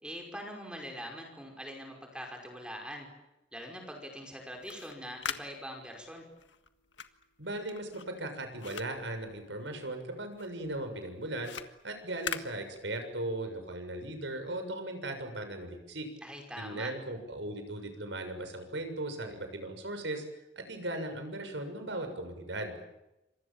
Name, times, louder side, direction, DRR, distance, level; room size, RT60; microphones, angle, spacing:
voice 1, 0.0-3.1 3.5-6.2 16.2-16.9, equal, 5° right, 2 dB, 5.3 m, -43 dB
sound 1, 4.5-10.0 10.3-13.3, left 7 dB, 90° left, 1.7 m, -43 dB
voice 2, 7.4-11.5 11.8-16.1 16.6-20.2 20.5-22.8, right 1 dB, 85° right, 7 dB, 6.7 m, -38 dB
28.0 x 26.5 x 7.4 m, 0.93 s
head